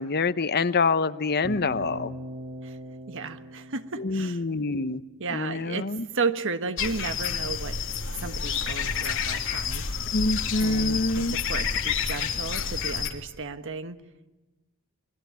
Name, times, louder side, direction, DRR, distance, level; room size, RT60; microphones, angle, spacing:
voice 1, 0.0-2.2 4.0-5.0 5.3-6.1 10.1-11.4, left 3 dB, 50° left, 13 dB, 0.9 m, -26 dB
sound 1, 1.4-5.5, right 1 dB, 35° right, 3.4 m, -41 dB
voice 2, 3.1-4.4 5.2-7.8 8.1-9.8 10.6-14.0, right 4 dB, 65° right, 10 dB, 1.4 m, -33 dB
sound 2, 6.8-13.1, left 6 dB, 65° left, 2.8 m, -29 dB
28.5 x 22.0 x 9.5 m, 1.1 s
head